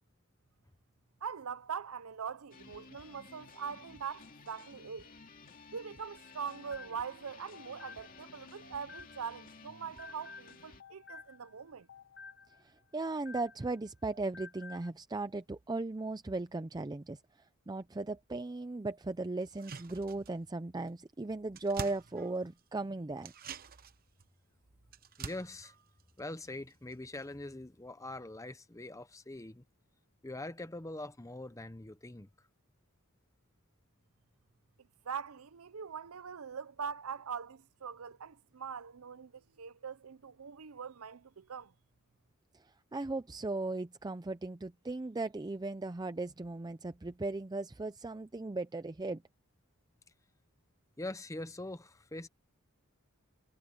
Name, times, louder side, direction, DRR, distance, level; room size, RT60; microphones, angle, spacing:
voice 1, 1.2-5.1 5.7-11.9 35.0-41.7, right 6 dB, 75° right, 0.6 m, -42 dB
sound 1, 2.5-10.8, left 4 dB, 40° left, 2.4 m, -55 dB
sound 2, 6.2-9.4 9.7-13.8 14.1-14.9, left 4 dB, 55° left, 3.9 m, -53 dB
voice 2, 12.6-17.2 17.7-23.3 42.9-49.2, right 2 dB, 20° right, 0.4 m, -37 dB
sound 3, 19.4-20.6 20.9-21.0 21.2-22.8 23.2-26.9 27.2-27.3, right 5 dB, 45° right, 0.9 m, -47 dB
voice 3, 25.2-25.7 26.2-29.6 30.2-32.3 51.0-52.3, left 2 dB, 15° left, 0.8 m, -43 dB
head